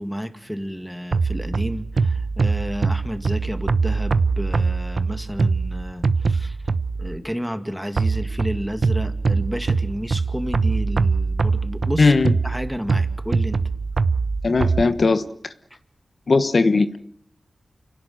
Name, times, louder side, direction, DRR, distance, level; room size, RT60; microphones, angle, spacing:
voice 1, 0.0-6.7 7.0-12.1 12.4-13.6, equal, ahead, 8 dB, 2.1 m, -31 dB
sound 1, 1.1-7.2 8.0-14.8, right 4 dB, 55° right, 0.9 m, -22 dB
voice 2, 12.0-12.3 14.4-15.2 16.3-17.0, left 3 dB, 55° left, 10 dB, 1.2 m, -18 dB
29.5 x 17.0 x 7.9 m, 0.70 s
wide cardioid pair, 110°, 0 cm